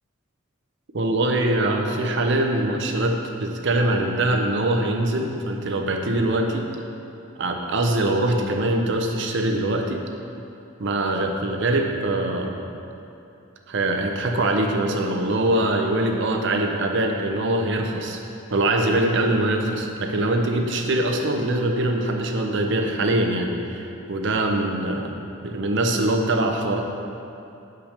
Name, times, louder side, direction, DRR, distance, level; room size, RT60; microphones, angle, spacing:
voice 1, 0.9-6.7 7.4-10.0 10.8-12.7 13.7-18.2 18.5-26.8, right 1 dB, 60° right, 3 dB, 0.7 m, -23 dB
5.7 x 5.0 x 6.5 m, 2.7 s
head